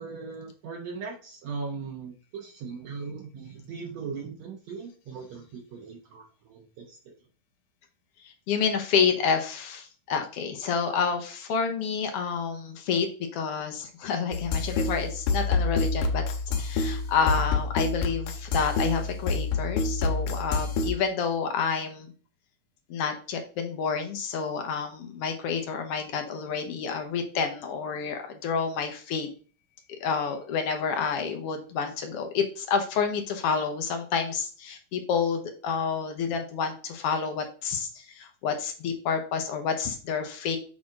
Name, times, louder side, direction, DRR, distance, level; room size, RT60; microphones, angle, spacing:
voice 1, 0.0-7.0, right 5 dB, 65° right, -1 dB, 2.1 m, -39 dB
voice 2, 8.2-13.1 13.3-16.2 16.6-22.1 22.9-29.3 30.0-40.6, left 6 dB, 65° left, 5 dB, 1.6 m, -29 dB
sound 1, 14.3-20.9, left 3 dB, 85° left, 2.4 m, -27 dB
7.2 x 4.2 x 3.7 m, 0.39 s
omnidirectional pair, 3.6 m